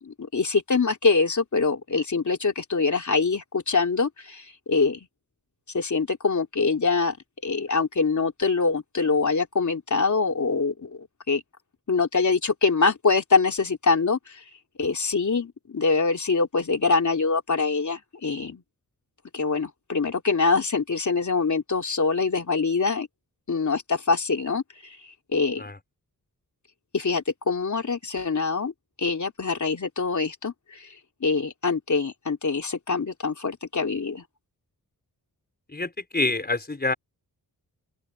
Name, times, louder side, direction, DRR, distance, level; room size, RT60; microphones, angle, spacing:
voice 1, 0.0-5.1 5.7-7.2 7.4-11.4 11.9-14.4 14.8-18.6 19.3-23.1 23.5-25.0 25.3-25.6 26.9-28.7 29.0-31.0 31.2-34.2, left 4 dB, 50° left, 3.5 m, -24 dB
voice 2, 35.7-36.9, left 2 dB, 25° left, 5.2 m, -27 dB
open air
wide cardioid pair, 95°, 37 cm